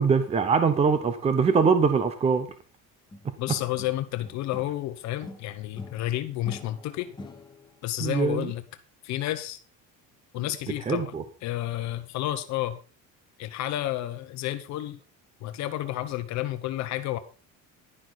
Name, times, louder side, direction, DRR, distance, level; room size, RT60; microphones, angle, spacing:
voice 1, 0.0-2.5 8.0-8.5 10.9-11.2, right 5 dB, 20° right, 10 dB, 0.8 m, -22 dB
sound 1, 3.1-4.9 5.2-7.8, left 2 dB, 15° left, 1.5 m, -44 dB
voice 2, 3.4-7.1 7.8-8.6 9.0-9.6 10.3-11.1 11.4-12.8 13.4-15.0 15.4-17.2, left 14 dB, 55° left, 9 dB, 1.1 m, -31 dB
11.5 x 11.0 x 4.1 m, 0.35 s
cardioid pair, 170°, 33 cm